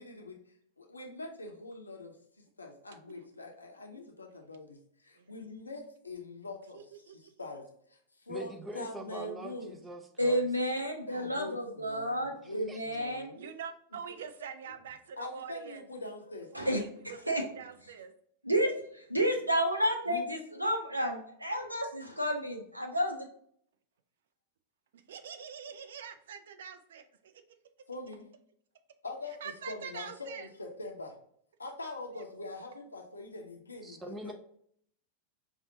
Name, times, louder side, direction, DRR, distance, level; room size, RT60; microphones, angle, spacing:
voice 1, 0.0-9.8 11.1-13.4 14.1-14.2 14.6-14.7 15.2-16.5 20.1-20.3 27.9-28.3 29.0-31.2 31.6-34.3, left 2 dB, 80° left, 2 dB, 0.7 m, -44 dB
voice 2, 8.3-10.5 12.4-12.8 33.8-34.3, right 2 dB, 15° right, 5 dB, 0.6 m, -43 dB
voice 3, 10.2-13.5 16.5-17.4 17.8-17.9 18.4-23.3, equal, 85° right, 2 dB, 0.7 m, -31 dB
voice 4, 13.4-15.5 16.5-16.7 17.3-18.1 25.1-27.0 29.4-30.4, right 7 dB, 60° right, 9 dB, 0.4 m, -44 dB
5.2 x 2.4 x 2.7 m, 0.65 s
figure-of-eight pair, 90°, 0 cm